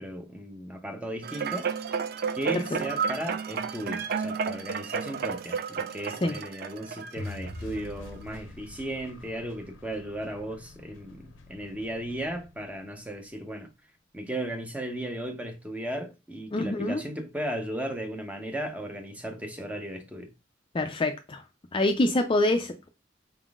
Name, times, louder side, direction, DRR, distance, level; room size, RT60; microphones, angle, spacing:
voice 1, 0.0-1.7 2.3-13.7 14.1-20.3, right 1 dB, 10° right, 0.7 m, -36 dB
sound 1, 1.2-7.8 8.3-8.4, right 6 dB, 55° right, 0.4 m, -32 dB
sound 2, 7.2-13.3, left 2 dB, 90° left, 0.7 m, -45 dB
voice 2, 16.5-17.0 20.7-21.4 21.7-22.9, left 1 dB, 25° left, 0.4 m, -25 dB
4.9 x 3.6 x 2.4 m
head